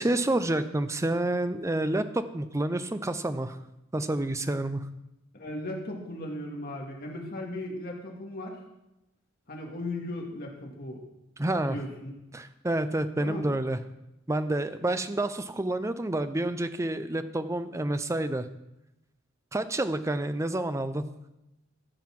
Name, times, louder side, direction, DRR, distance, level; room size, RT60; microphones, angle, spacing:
voice 1, 0.0-3.6 3.9-4.8 11.4-11.8 12.3-13.8 14.3-18.5 19.5-21.0, right 1 dB, 15° right, 11 dB, 0.5 m, -29 dB
voice 2, 5.3-8.6 9.5-11.0 11.6-12.1 13.2-13.5, left 1 dB, 45° left, 0 dB, 2.1 m, -37 dB
15.0 x 5.6 x 6.0 m, 0.92 s
head